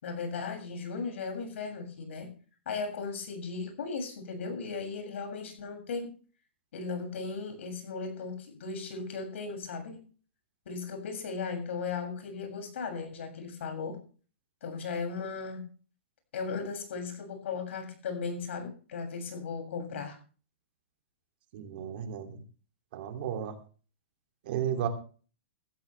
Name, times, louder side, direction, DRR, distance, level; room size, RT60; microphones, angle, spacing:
voice 1, 0.0-2.3 2.7-6.2 6.7-10.0 10.7-14.0 14.6-15.6 16.3-20.2, left 5 dB, 70° left, 5 dB, 7.3 m, -36 dB
voice 2, 21.5-22.4 22.9-23.5 24.4-24.9, right 9 dB, 50° right, 6 dB, 3.0 m, -33 dB
15.5 x 15.5 x 3.5 m, 0.39 s
hypercardioid pair, 155°, 7 cm